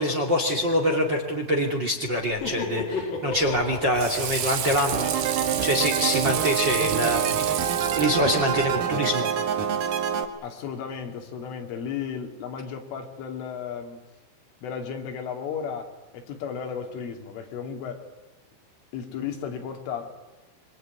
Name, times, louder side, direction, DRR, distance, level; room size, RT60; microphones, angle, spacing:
voice 1, 0.0-7.5 7.9-9.3, equal, 30° right, 3 dB, 2.3 m, -25 dB
Laughter, 2.2-6.8, left 3 dB, 50° left, 5.1 m, -35 dB
Water / Sink (filling or washing), 3.3-8.8, right 10 dB, 70° right, 2.2 m, -32 dB
sound 1, 4.9-10.2, right 8 dB, 50° right, 2.9 m, -26 dB
voice 2, 10.4-14.0 14.6-18.1 18.9-20.1, left 7 dB, 75° left, 4 dB, 5.2 m, -34 dB
25.0 x 24.5 x 9.6 m, 1.2 s
omnidirectional pair, 5.8 m